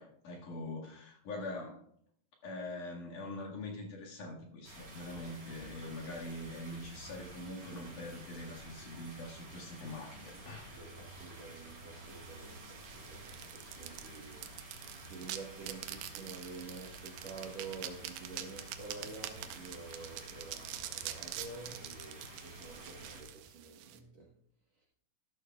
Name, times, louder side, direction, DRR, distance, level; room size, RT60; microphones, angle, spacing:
voice 1, 0.0-1.8 2.4-10.7, left 2 dB, 55° left, -2 dB, 3.0 m, -43 dB
sound 1, 4.6-23.2, right 1 dB, 35° right, 3.9 m, -50 dB
voice 2, 10.5-24.4 24.7-24.9, right 4 dB, 60° right, -2 dB, 1.8 m, -49 dB
sound 2, 12.1-24.0, right 12 dB, 85° right, 2.7 m, -46 dB
13.0 x 13.0 x 2.3 m, 0.64 s
omnidirectional pair, 4.7 m